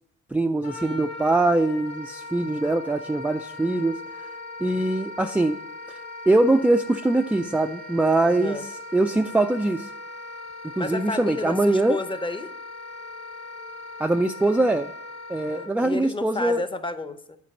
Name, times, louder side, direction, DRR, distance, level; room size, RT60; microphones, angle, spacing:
voice 1, 0.3-4.0 4.6-5.6 6.3-8.6 8.9-9.9 10.8-12.0 14.0-14.9 15.3-16.6, right 2 dB, 5° right, 6 dB, 0.3 m, -22 dB
Wind instrument woodwind instrument, 0.6-15.7, left 2 dB, 55° left, 1.9 m, -39 dB
voice 2, 8.2-8.6 10.8-12.5 15.5-17.4, left 2 dB, 15° left, 11 dB, 0.7 m, -31 dB
8.5 x 5.1 x 7.0 m, 0.75 s
cardioid pair, 90°, 30 cm